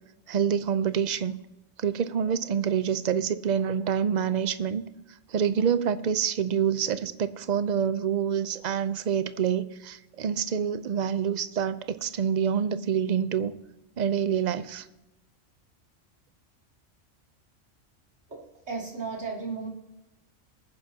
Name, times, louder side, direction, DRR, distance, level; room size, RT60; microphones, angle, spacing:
voice 1, 0.3-1.4 1.8-4.8 5.3-13.6 14.0-14.9, right 8 dB, 45° right, 13 dB, 0.6 m, -27 dB
voice 2, 18.3-19.7, right 4 dB, 60° right, -3 dB, 3.1 m, -35 dB
23.0 x 9.8 x 2.8 m, 0.97 s
omnidirectional pair, 1.3 m